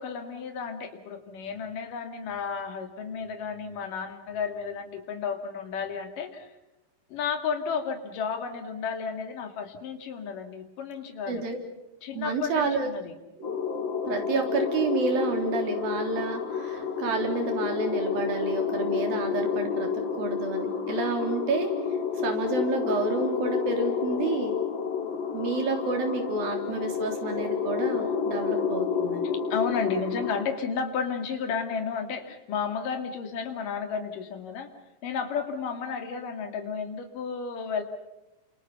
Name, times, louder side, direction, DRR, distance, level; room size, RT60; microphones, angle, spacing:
voice 1, 0.0-6.5 7.1-11.4 12.0-13.1 29.2-34.7 35.0-37.8, left 6 dB, 70° left, 5 dB, 4.1 m, -32 dB
voice 2, 11.3-11.6 12.1-12.9 13.4-13.6 14.1-19.9 20.2-21.7 22.2-24.5 25.3-29.2, right 3 dB, 85° right, 4 dB, 5.5 m, -29 dB
sound 1, 13.4-30.4, left 6 dB, 35° left, 2.7 m, -30 dB
29.0 x 27.0 x 5.7 m, 1.0 s
omnidirectional pair, 4.0 m